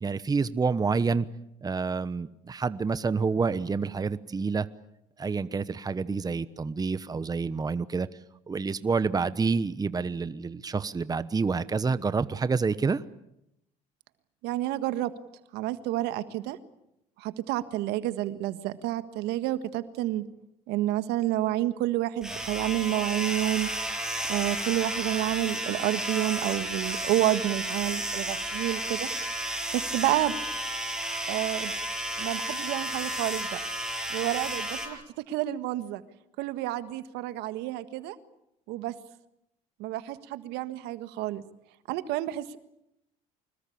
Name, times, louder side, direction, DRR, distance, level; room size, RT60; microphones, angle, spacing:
voice 1, 0.0-1.3 1.6-4.7 5.2-8.1 8.5-13.0, right 4 dB, 20° right, 15 dB, 1.0 m, -28 dB
voice 2, 14.4-15.1 15.5-16.6 17.2-20.2 20.7-23.7 24.3-29.1 29.7-30.4 31.3-31.7 32.2-33.6 34.1-35.0 35.3-36.0 36.4-38.2 38.7-39.0 39.8-41.4 41.9-42.6, right 15 dB, 75° right, 12 dB, 1.6 m, -29 dB
sound 1, 22.2-34.9, right 1 dB, 5° right, 7.7 m, -32 dB
25.5 x 21.0 x 8.7 m, 0.82 s
supercardioid pair, 85°, 17 cm